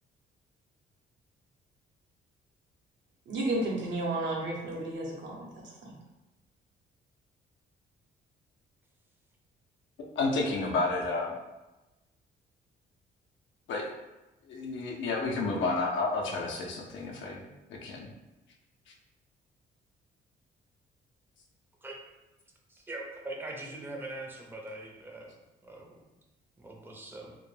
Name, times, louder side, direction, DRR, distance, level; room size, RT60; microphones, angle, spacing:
voice 1, 3.3-5.9, right 2 dB, 70° right, -2 dB, 0.8 m, -33 dB
voice 2, 10.2-11.3 13.7-13.9 14.5-17.4 17.7-18.1, left 3 dB, 70° left, -1 dB, 0.5 m, -30 dB
voice 3, 22.7-25.3 25.6-26.1 26.6-27.3, right 2 dB, 10° right, -1 dB, 0.5 m, -42 dB
2.2 x 2.1 x 3.1 m, 1.0 s
cardioid pair, 90°, 20 cm